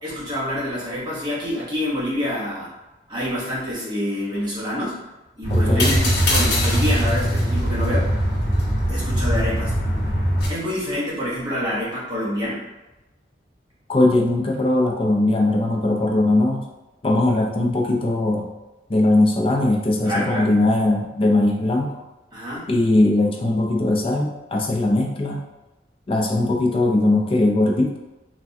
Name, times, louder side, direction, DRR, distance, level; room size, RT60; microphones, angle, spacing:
voice 1, 0.0-2.7 3.1-5.0 5.4-8.1 8.9-9.7 10.5-12.6 20.0-20.5 22.3-22.7, equal, 25° right, -8 dB, 0.9 m, -27 dB
sound 1, 5.4-10.5, equal, 60° left, 0.8 m, -21 dB
voice 2, 5.5-5.9 13.9-16.6 17.0-18.5 18.9-22.0 22.7-25.4 26.1-28.0, left 2 dB, 30° left, 1 dB, 0.4 m, -20 dB
3.3 x 2.2 x 2.6 m, 1.0 s
head